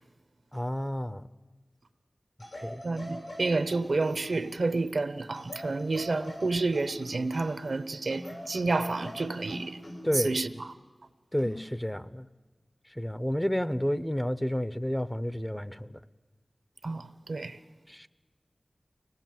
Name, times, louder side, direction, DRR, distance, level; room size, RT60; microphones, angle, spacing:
voice 1, 0.5-1.2 2.5-2.8 10.0-10.4 11.3-12.3 13.0-16.0 17.9-18.1, equal, 10° left, 0.7 m, -30 dB
sound 1, 2.4-4.6 5.3-7.7 8.1-10.3 11.4-11.6, equal, 80° left, 7.8 m, -43 dB
voice 2, 2.8-9.8 10.1-10.7 16.8-17.6, right 3 dB, 80° right, 0.8 m, -30 dB
24.5 x 18.5 x 7.6 m
wide cardioid pair, 70°, 0 cm